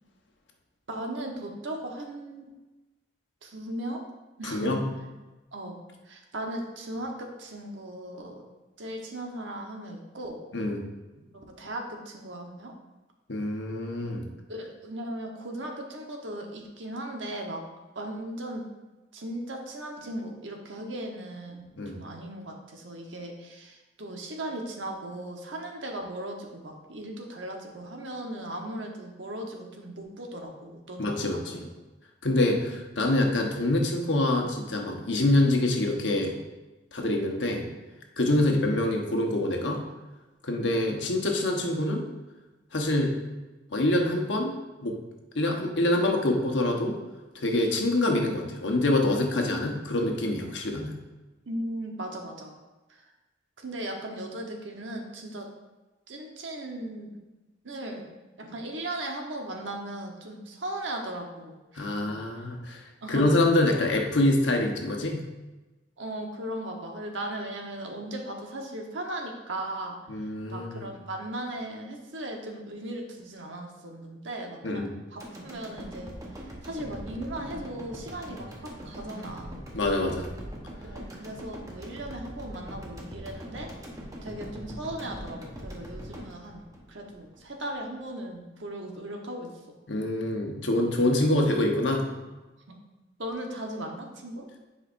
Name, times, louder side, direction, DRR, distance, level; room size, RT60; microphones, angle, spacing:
voice 1, 0.9-2.4 3.4-4.0 4.4-4.8 5.5-5.8 6.0-8.4 8.8-10.4 11.1-12.7 14.5-17.6 17.9-18.6 19.1-31.6 32.3-32.4 51.4-52.5 52.9-53.0 53.6-55.5 56.1-57.2 57.6-58.1 58.4-62.1 62.4-62.5 63.0-63.2 66.0-70.0 70.5-74.8 75.1-76.1 76.6-79.6 80.8-83.7 84.2-86.6 86.9-89.5 93.2-94.5, right 1 dB, 85° right, 1 dB, 1.1 m, -37 dB
voice 2, 4.4-4.8 10.5-10.8 13.3-14.2 21.8-21.9 31.0-31.7 32.2-36.4 36.9-37.7 38.2-39.8 40.4-42.0 42.7-43.2 43.7-44.5 44.8-44.9 45.3-46.9 47.3-50.9 61.8-62.8 63.1-65.2 70.1-70.9 74.6-74.9 79.7-80.3 89.9-92.1, left 1 dB, 75° left, 1 dB, 1.1 m, -25 dB
sound 1, 75.2-87.4 87.8-87.9, equal, 20° right, 1.0 m, -42 dB
10.0 x 5.0 x 2.6 m, 1.1 s
head